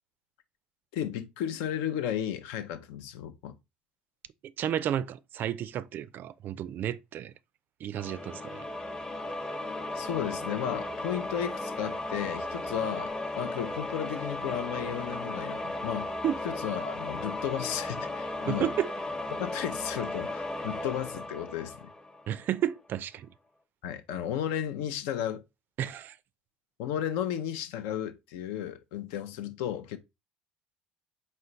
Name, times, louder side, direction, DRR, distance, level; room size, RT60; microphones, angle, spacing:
voice 1, 0.9-3.6 9.9-16.1 16.4-18.7 19.4-21.9 23.8-25.4 26.8-30.0, left 10 dB, 75° left, 0.5 m, -34 dB
voice 2, 4.4-7.3 7.8-8.6 16.2-16.4 18.5-18.9 22.3-23.3 25.8-26.2, right 10 dB, 50° right, 0.3 m, -32 dB
sound 1, 7.9-22.6, left 2 dB, 15° left, 0.8 m, -36 dB
4.3 x 2.2 x 3.8 m
hypercardioid pair, 70°, 4 cm